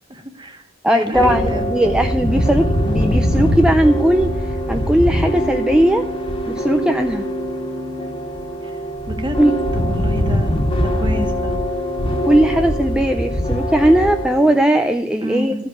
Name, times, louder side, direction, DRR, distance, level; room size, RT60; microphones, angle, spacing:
voice 1, 0.1-1.7 8.6-8.8 9.1-9.4 9.7-11.5 15.2-15.6, equal, 25° right, 5 dB, 1.5 m, -29 dB
voice 2, 0.8-6.1 6.5-7.3 9.4-9.6 12.2-15.5, right 1 dB, 5° right, 6 dB, 0.4 m, -17 dB
sound 1, 1.1-14.6, equal, 30° left, 1.6 m, -22 dB
14.5 x 5.3 x 9.5 m, 0.84 s
head